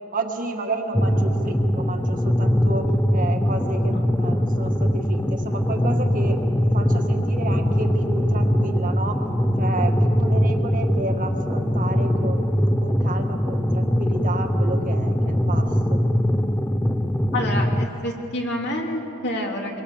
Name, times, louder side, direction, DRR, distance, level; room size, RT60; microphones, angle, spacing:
voice 1, 0.1-9.2 9.6-16.0, right 2 dB, 40° right, 4 dB, 1.8 m, -31 dB
sound 1, 0.9-17.9, equal, 10° left, 0.6 m, -21 dB
voice 2, 17.3-19.8, left 1 dB, 50° left, 1 dB, 2.9 m, -28 dB
25.0 x 22.0 x 7.2 m, 2.9 s
head